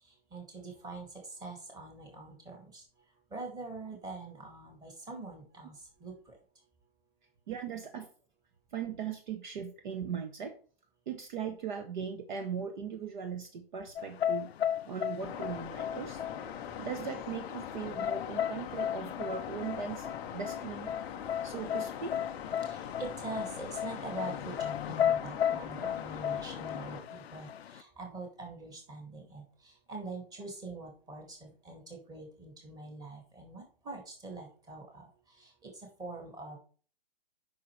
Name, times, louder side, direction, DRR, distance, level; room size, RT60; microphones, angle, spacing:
voice 1, 0.3-2.8 3.3-6.4 22.6-36.6, right 3 dB, 10° right, 1 dB, 2.1 m, -44 dB
voice 2, 7.5-8.1 8.7-10.6 11.1-14.5 14.8-16.2 16.8-20.1 20.3-20.9 21.4-22.3, right 7 dB, 50° right, 7 dB, 1.2 m, -39 dB
sound 1, 14.0-27.8, left 9 dB, 90° left, 0.5 m, -35 dB
sound 2, 15.2-27.0, left 8 dB, 10° left, 0.4 m, -42 dB
8.4 x 5.8 x 3.2 m, 0.40 s
hypercardioid pair, 145°, 30 cm